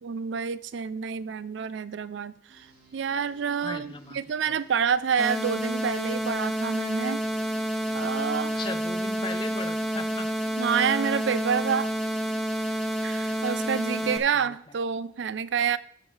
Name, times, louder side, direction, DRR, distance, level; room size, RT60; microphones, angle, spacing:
voice 1, 0.0-2.7 2.9-7.2 7.9-8.6 10.6-11.9 12.7-15.8, right 7 dB, 75° right, 0.4 m, -28 dB
sound 1, 2.5-14.2, right 1 dB, 55° right, 2.4 m, -56 dB
voice 2, 3.6-4.2 4.5-4.6 8.6-10.3 14.0-14.5, left 3 dB, 25° left, 0.6 m, -38 dB
sound 2, 5.2-14.2, right 1 dB, ahead, 0.9 m, -29 dB
14.0 x 7.2 x 3.3 m
head